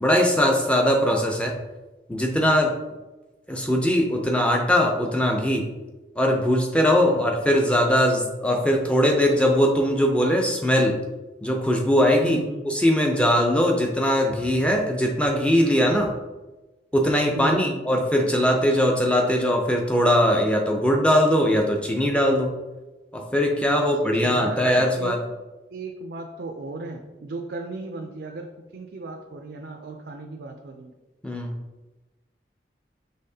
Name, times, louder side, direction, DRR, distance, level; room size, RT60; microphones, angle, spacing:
voice 1, 0.0-1.6 2.1-2.7 3.5-5.7 6.2-11.0 11.4-16.1 16.9-22.5 23.1-25.2 31.2-31.5, equal, 5° left, 1 dB, 0.5 m, -21 dB
voice 2, 12.2-12.7 17.3-17.9 23.6-25.2 25.7-28.5 28.7-30.9, right 3 dB, 75° right, 3 dB, 0.4 m, -36 dB
5.6 x 3.4 x 2.7 m, 1.1 s
head